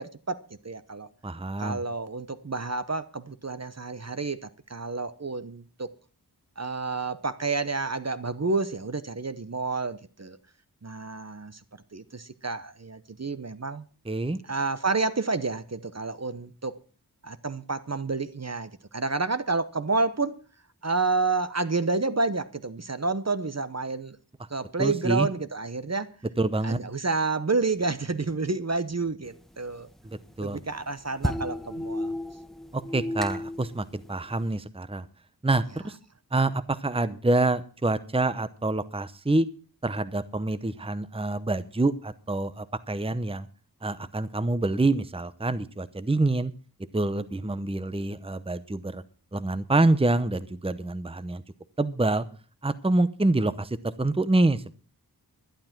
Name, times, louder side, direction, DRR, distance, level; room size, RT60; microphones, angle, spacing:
voice 1, 0.0-1.1 1.6-5.9 6.6-10.4 10.8-11.6 11.9-13.8 14.4-16.8 17.2-20.4 20.8-24.2 24.5-26.1 26.6-29.9 30.4-32.1, right 3 dB, 40° right, 0.9 m, -29 dB
voice 2, 1.2-1.8 14.1-14.4 24.8-25.3 26.4-26.8 30.4-30.6 32.7-35.1 35.4-36.0 36.3-39.5 39.8-43.5 43.8-46.5 46.9-49.0 49.3-51.4 51.8-52.2 52.6-54.7, right 2 dB, 15° right, 0.8 m, -26 dB
sound 1, 29.3-34.6, left 1 dB, ahead, 1.2 m, -34 dB
11.5 x 11.5 x 6.0 m
wide cardioid pair, 55°, 39 cm